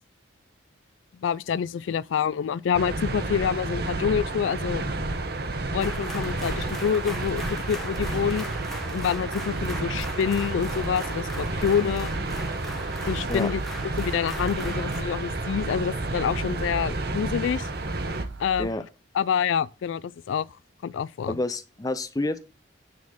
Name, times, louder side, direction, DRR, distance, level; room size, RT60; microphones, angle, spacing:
voice 1, 1.2-4.8 5.7-8.5 8.9-12.1 13.1-13.6 14.0-17.7 18.4-18.7 19.1-20.5 20.8-21.4, left 7 dB, 75° left, 0.3 m, -27 dB
sound 1, 2.7-18.3, right 2 dB, 50° right, 1.0 m, -31 dB
sound 2, 5.8-15.0, equal, ahead, 1.1 m, -40 dB
sound 3, 10.0-18.7, right 3 dB, 75° right, 0.8 m, -40 dB
voice 2, 21.3-22.4, left 2 dB, 20° left, 0.5 m, -29 dB
9.5 x 4.2 x 6.1 m
head